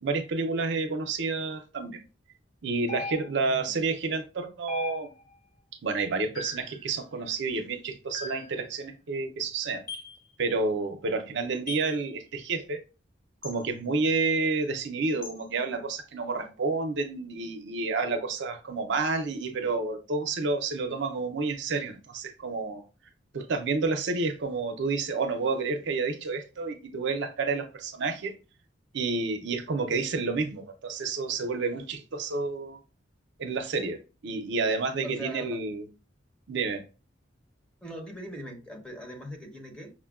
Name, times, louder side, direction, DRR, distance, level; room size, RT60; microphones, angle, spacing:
voice 1, 0.0-2.0 2.6-5.1 5.8-9.8 10.4-12.8 13.4-22.8 23.3-28.4 28.9-32.8 33.4-35.9 36.5-36.8, right 3 dB, 65° right, 0.5 m, -30 dB
sound 1, 2.9-3.6 4.7-5.4 6.3-6.8 8.1-8.6 9.9-10.2 11.7-11.9 13.4-13.6 15.2-15.4, left 3 dB, 45° left, 1.1 m, -38 dB
voice 2, 3.4-3.8 35.0-35.6 37.8-39.9, equal, 5° left, 0.7 m, -41 dB
5.9 x 2.1 x 2.3 m
head